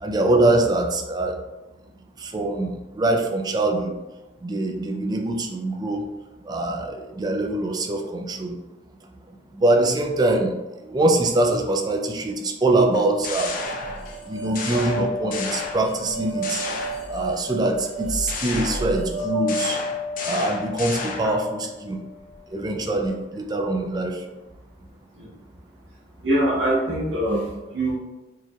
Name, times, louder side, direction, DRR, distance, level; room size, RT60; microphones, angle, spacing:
voice 1, 0.0-1.4 2.2-3.9 4.4-6.1 6.5-8.6 9.5-10.5 10.9-13.5 14.3-16.6 17.1-19.8 20.2-22.0 22.5-24.2, right 2 dB, 20° right, 2 dB, 0.4 m, -23 dB
sound 1, 12.9-14.2 14.5-16.1 16.4-17.5 18.3-21.4, left 4 dB, 50° left, 0.5 m, -32 dB
sound 2, 13.3-22.5, right 1 dB, 65° left, 1.0 m, -32 dB
voice 2, 26.2-27.9, right 1 dB, 80° right, -6 dB, 0.8 m, -23 dB
4.5 x 2.9 x 2.3 m, 1.1 s
head